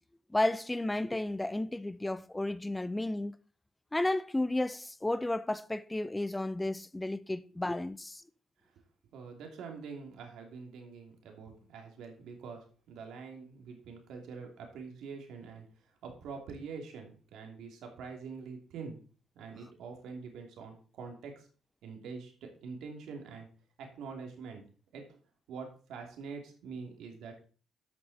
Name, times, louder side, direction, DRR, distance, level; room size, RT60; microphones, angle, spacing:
voice 1, 0.3-3.4 3.9-8.2, left 1 dB, 10° left, 0.6 m, -32 dB
voice 2, 9.1-19.0 19.3-21.5 21.8-22.3 22.6-23.5 23.8-24.6 24.9-25.2 25.5-27.5, right 5 dB, 85° right, 2.8 m, -45 dB
12.5 x 6.5 x 4.2 m
cardioid pair, 90°, 0 cm